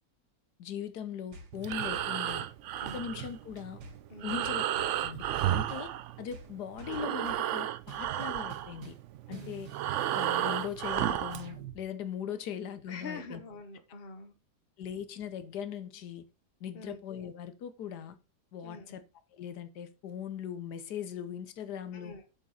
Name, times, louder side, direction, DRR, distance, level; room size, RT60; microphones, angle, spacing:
voice 1, 0.6-2.5 2.9-3.8 4.2-4.6 5.0-5.2 5.5-5.9 6.2-8.9 9.3-9.7 10.0-13.4 14.8-16.2 16.6-18.2 18.5-19.0 19.3-22.1, left 8 dB, 80° left, 1.4 m, -39 dB
sound 1, 1.3-2.5 2.9-3.4 3.8-5.0 5.4-5.9 6.3-7.5 7.9-9.1 9.3-11.8, right 6 dB, 85° right, 1.9 m, -48 dB
Breathing, 1.5-6.5 6.8-11.5, right 12 dB, 70° right, 0.7 m, -33 dB
voice 2, 12.9-14.3 16.7-17.0 18.6-19.0 21.9-22.3, left 3 dB, 40° left, 1.6 m, -45 dB
7.3 x 7.2 x 4.1 m
omnidirectional pair, 1.7 m